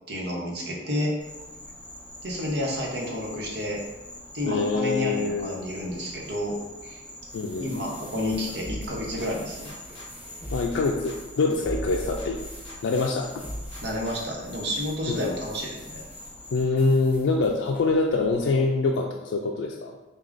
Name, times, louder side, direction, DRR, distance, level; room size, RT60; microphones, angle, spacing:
voice 1, 0.1-1.2 2.2-3.8 4.3-6.6 6.8-7.0 7.6-9.7 13.8-16.1, left 1 dB, 60° right, -2 dB, 0.9 m, -30 dB
Insect, 1.2-16.6, left 1 dB, 5° left, 0.4 m, -44 dB
voice 2, 4.5-5.6 7.3-7.7 10.5-12.4 12.8-13.3 15.1-15.4 16.5-19.9, left 3 dB, 90° left, 1 dB, 0.3 m, -25 dB
sound 1, 7.2-18.5, equal, 10° right, 1.2 m, -49 dB
sound 2, 8.6-10.1 10.4-13.1 13.4-14.5, equal, 30° left, 1.1 m, -38 dB
6.2 x 2.3 x 2.5 m, 1.1 s
head